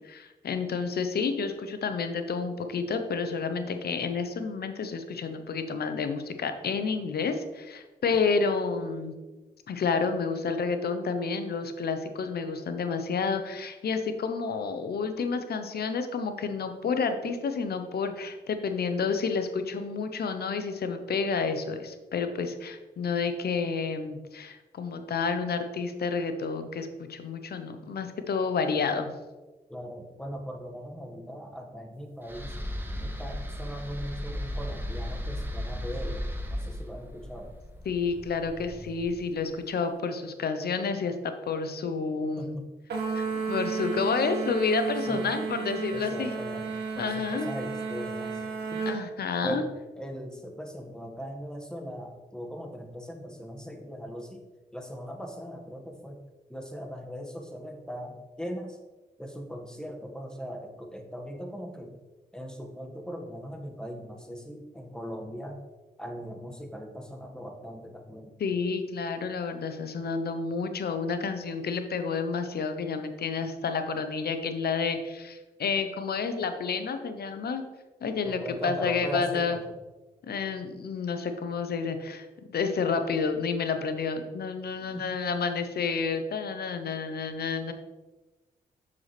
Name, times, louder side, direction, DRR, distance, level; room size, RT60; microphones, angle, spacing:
voice 1, 0.0-9.1 9.7-29.1 37.8-42.6 43.1-46.3 47.0-47.5 48.9-49.6 68.4-77.6 78.0-79.6 80.3-87.7, left 5 dB, 70° left, 8 dB, 0.9 m, -30 dB
voice 2, 29.7-32.6 33.0-36.2 36.5-37.5 42.4-42.7 45.1-45.3 45.9-48.4 48.7-48.9 49.4-49.7 50.0-54.4 54.7-56.2 56.5-58.8 59.2-61.9 62.3-65.6 66.0-68.4 78.2-79.6 84.9-85.1, equal, 5° left, 3 dB, 1.6 m, -39 dB
sound 1, 32.2-39.4, equal, 10° right, 1.4 m, -36 dB
sound 2, 42.9-49.0, right 5 dB, 75° right, 1.8 m, -33 dB
6.8 x 6.6 x 3.3 m, 1.2 s
supercardioid pair, 45°, 17 cm